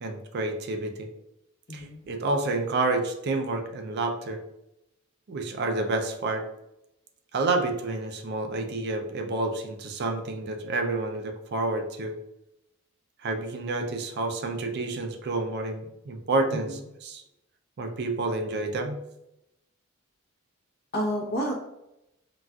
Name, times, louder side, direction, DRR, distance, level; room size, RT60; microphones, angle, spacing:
voice 1, 0.0-1.1 1.7-4.4 5.3-6.5 7.3-12.2 13.2-17.2 17.8-19.0, right 2 dB, 50° right, 5 dB, 0.4 m, -29 dB
voice 2, 1.7-2.0 16.5-16.7 20.9-21.5, equal, 50° left, -1 dB, 0.8 m, -29 dB
3.9 x 2.3 x 2.3 m, 0.87 s
head